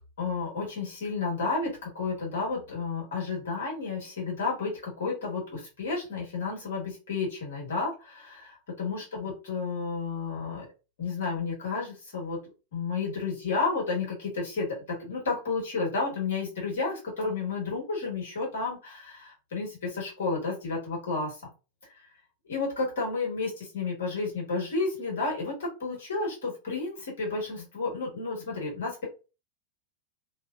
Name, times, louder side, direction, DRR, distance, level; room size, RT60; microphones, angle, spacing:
voice 1, 0.2-10.7 11.0-12.4 12.7-21.4 22.4-29.0, left 4 dB, 60° left, -3 dB, 1.3 m, -31 dB
2.5 x 2.2 x 2.3 m, 0.31 s
figure-of-eight pair, 90°, 0 cm